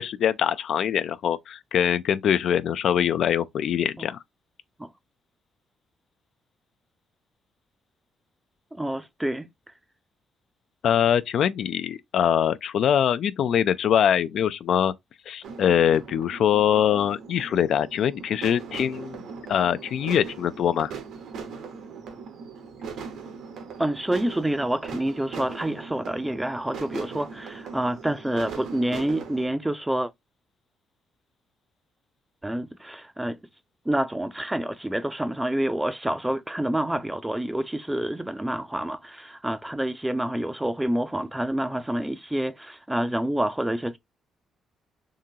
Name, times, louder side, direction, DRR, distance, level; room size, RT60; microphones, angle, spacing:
voice 1, 0.0-4.2 10.8-14.9 15.3-19.2 19.5-20.9, left 9 dB, 70° left, 0.3 m, -23 dB
voice 2, 8.7-9.5 23.8-30.1 32.4-33.4 33.9-44.0, right 1 dB, 10° right, 0.4 m, -28 dB
sound 1, 15.4-29.5, right 5 dB, 75° right, 0.9 m, -40 dB
3.7 x 2.8 x 2.7 m
cardioid pair, 90°, 0 cm